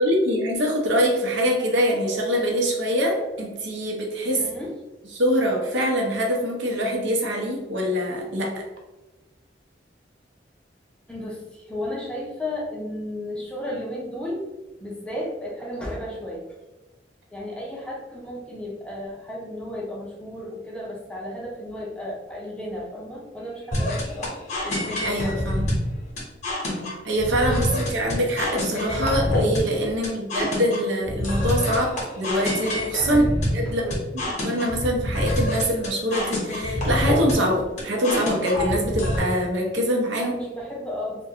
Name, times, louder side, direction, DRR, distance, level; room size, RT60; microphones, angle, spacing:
voice 1, 0.0-4.4 5.1-8.6 25.0-25.7 27.0-33.3 33.5-40.3, equal, 85° right, 0 dB, 0.6 m, -24 dB
voice 2, 4.4-4.7 11.1-14.5 14.8-16.5 17.3-24.3 33.1-33.3 33.7-34.0 40.2-41.3, left 1 dB, 5° left, -4 dB, 0.5 m, -33 dB
sound 1, 23.7-39.2, left 1 dB, 40° left, 0.7 m, -26 dB
2.4 x 2.2 x 2.7 m, 1.1 s
head